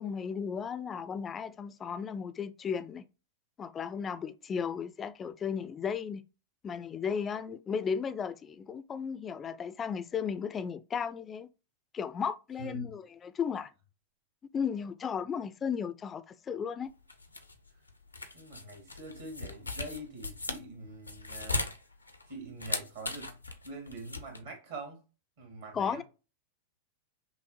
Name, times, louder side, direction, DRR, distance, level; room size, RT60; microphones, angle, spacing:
voice 1, 0.0-3.0 3.6-6.2 6.6-11.5 11.9-13.7 14.5-16.9 25.7-26.0, left 7 dB, 25° left, 0.4 m, -35 dB
voice 2, 12.6-12.9 18.3-21.7 22.3-23.4 23.6-25.0 25.4-26.0, right 2 dB, 60° right, 1.8 m, -44 dB
sound 1, 16.9-24.4, left 3 dB, 85° left, 0.6 m, -38 dB
5.9 x 2.1 x 2.8 m
figure-of-eight pair, 90°, 0 cm